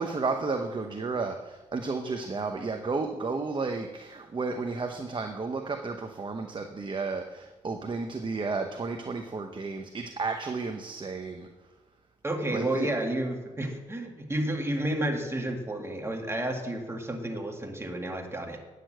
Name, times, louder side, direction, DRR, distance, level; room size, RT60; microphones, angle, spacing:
voice 1, 0.0-11.5 12.5-12.9, right 4 dB, 35° right, 5 dB, 0.9 m, -32 dB
voice 2, 12.2-18.6, right 1 dB, 20° right, 2 dB, 2.1 m, -31 dB
9.3 x 6.7 x 7.7 m, 1.2 s
cardioid pair, 70°, 14 cm